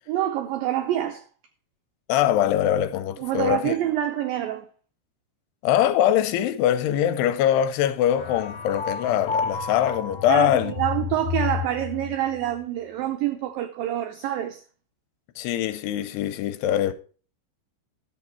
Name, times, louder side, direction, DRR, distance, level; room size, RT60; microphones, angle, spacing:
voice 1, 0.1-1.2 3.2-4.7 10.3-14.6, right 12 dB, 85° right, 2.0 m, -26 dB
voice 2, 2.1-3.7 5.6-10.7 15.4-16.9, left 11 dB, 80° left, 2.6 m, -22 dB
sound 1, 8.2-12.1, left 6 dB, 50° left, 1.9 m, -31 dB
11.0 x 7.6 x 4.3 m
omnidirectional pair, 5.0 m